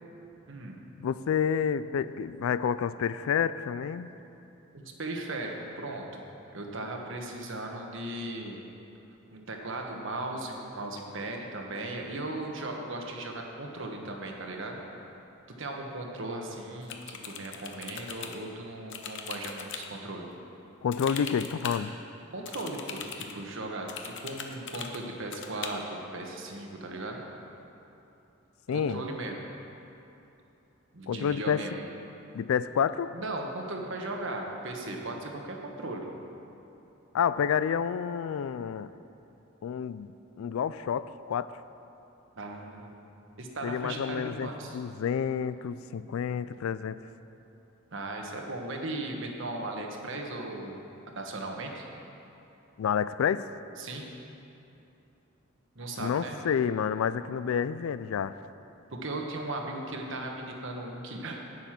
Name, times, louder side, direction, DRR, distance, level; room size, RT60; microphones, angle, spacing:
voice 1, 0.5-0.8 4.7-6.2 6.5-8.6 9.3-14.8 15.6-20.3 22.3-27.3 28.7-29.4 30.9-31.8 33.1-36.1 42.3-43.1 43.4-44.8 47.9-50.8 51.1-51.9 53.8-54.1 55.7-56.4 58.9-61.4, right 2 dB, 60° right, 1 dB, 1.3 m, -37 dB
voice 2, 1.0-4.1 20.8-21.9 28.7-29.0 31.1-31.7 32.3-33.1 37.1-38.9 39.6-40.1 40.4-41.5 43.6-47.0 52.8-53.4 56.0-58.4, left 7 dB, 75° left, 15 dB, 0.3 m, -29 dB
sound 1, 16.8-18.4 18.9-19.9 20.9-21.8 22.4-23.3 23.9-25.0 25.3-25.7, left 7 dB, 60° left, 0.8 m, -40 dB
9.7 x 9.2 x 5.9 m, 2.9 s
head